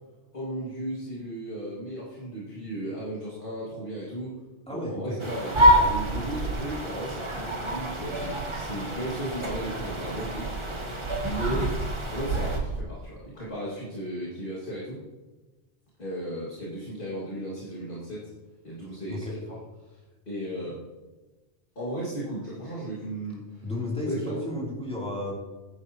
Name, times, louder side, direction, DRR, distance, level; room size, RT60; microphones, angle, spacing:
voice 1, 0.3-4.4 4.7-10.6 11.2-11.8 12.1-15.0 16.0-18.3 18.6-19.6 19.8-20.0 20.3-20.8 21.8-23.7 24.0-24.4, equal, 50° left, -6 dB, 2.1 m, -35 dB
voice 2, 4.7-5.2 19.1-19.4 23.6-25.3, left 1 dB, 5° left, -5 dB, 2.9 m, -32 dB
sound 1, 5.2-12.6, equal, 25° right, 1.3 m, -27 dB
Bird vocalization bird call bird song, 5.5-12.8, right 4 dB, 75° right, 1.0 m, -35 dB
10.0 x 9.6 x 2.9 m, 1.2 s
omnidirectional pair, 1.2 m